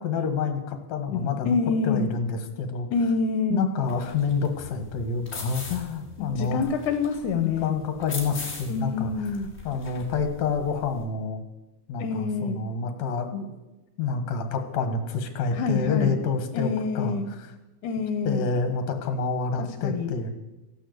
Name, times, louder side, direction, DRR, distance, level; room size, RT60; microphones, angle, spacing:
voice 1, 0.0-1.6 1.8-2.9 3.5-6.7 7.4-9.1 9.6-11.4 11.9-13.6 14.0-17.4 18.3-20.3, left 5 dB, 65° left, 8 dB, 2.9 m, -28 dB
voice 2, 1.1-2.1 2.9-3.7 6.2-7.7 8.7-9.5 12.0-12.6 15.5-16.2 16.5-17.3 17.8-18.5 19.8-20.1, left 4 dB, 80° left, 7 dB, 2.4 m, -27 dB
sound 1, 3.9-11.0, left 4 dB, 25° left, 3.1 m, -41 dB
15.5 x 11.5 x 8.2 m, 1.0 s
omnidirectional pair, 3.5 m